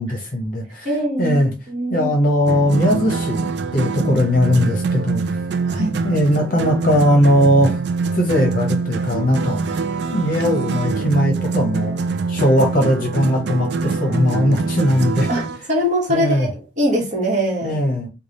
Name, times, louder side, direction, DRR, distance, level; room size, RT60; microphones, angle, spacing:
voice 1, 0.0-0.9 1.2-1.5 1.9-3.4 3.7-5.2 5.8-7.8 8.1-9.8 10.1-11.9 12.3-15.3 16.1-16.5 17.6-18.1, equal, 45° left, 2 dB, 0.7 m, -19 dB
voice 2, 0.8-1.4 1.7-2.1 5.7-5.9 10.0-10.3 15.3-17.8, equal, 40° right, -1 dB, 1.4 m, -22 dB
sound 1, 2.5-15.6, right 4 dB, 60° right, 0.4 m, -24 dB
3.3 x 2.3 x 3.9 m, 0.29 s
head